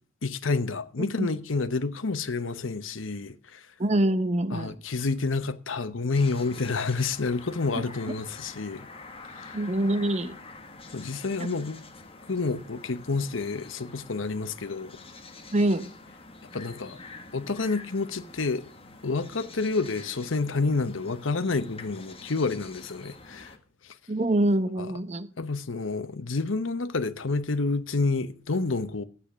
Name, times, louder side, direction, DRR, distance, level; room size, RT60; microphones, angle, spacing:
voice 1, 0.2-3.6 4.5-8.9 9.4-9.5 10.9-11.8 12.3-14.9 16.5-17.0 17.3-18.6 19.0-23.5 25.4-29.0, left 3 dB, 80° left, 1.0 m, -29 dB
voice 2, 3.8-4.8 7.7-7.8 9.5-10.4 15.5-15.9 24.1-25.3, right 1 dB, 35° right, 0.9 m, -25 dB
sound 1, 6.1-23.6, left 3 dB, 30° left, 1.6 m, -47 dB
12.5 x 8.7 x 6.1 m
head